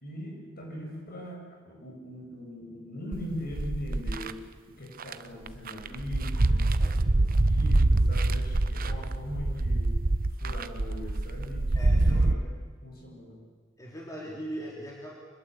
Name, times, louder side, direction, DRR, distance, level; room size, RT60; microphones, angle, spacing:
voice 1, 0.0-9.9 10.4-12.4 12.8-13.4, left 1 dB, 50° left, 0 dB, 7.5 m, -40 dB
sound 1, 3.1-4.3 5.0-5.1 5.5-12.3, right 2 dB, 45° right, 0.8 m, -25 dB
voice 2, 6.8-7.1 11.8-12.3 13.8-15.1, equal, 15° left, -2 dB, 3.5 m, -39 dB
25.5 x 21.0 x 8.5 m, 1.5 s
head